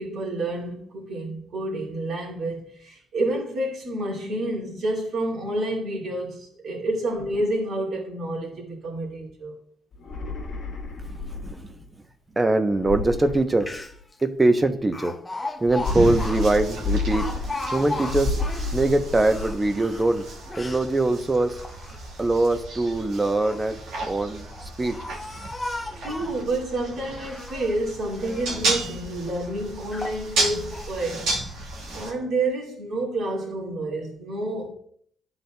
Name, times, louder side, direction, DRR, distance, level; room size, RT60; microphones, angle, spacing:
voice 1, 0.0-9.5 26.0-31.3 31.9-34.7, right 1 dB, 65° right, 2.0 m, -29 dB
sound 1, 9.9-11.8 12.7-14.2 15.6-17.8 18.1-19.8, left 3 dB, 60° left, 1.2 m, -30 dB
voice 2, 11.1-11.7 12.4-13.7 14.2-15.2 15.6-17.3 17.7-18.4 18.7-20.3 20.6-21.6 22.2-23.8 24.1-25.0, right 2 dB, 20° right, 0.7 m, -22 dB
Speech, 13.3-13.4 13.6-14.1 14.9-18.8 19.2-20.9 21.4-22.2 23.2-23.7 24.4-26.5 27.0-27.8 28.2-28.7 29.3-29.4 29.9-30.2 30.7-30.9, left 2 dB, 15° left, 0.6 m, -36 dB
sound 2, 15.8-32.1, right 2 dB, 90° right, 1.5 m, -33 dB
12.0 x 4.0 x 2.2 m
cardioid pair, 90°, 0 cm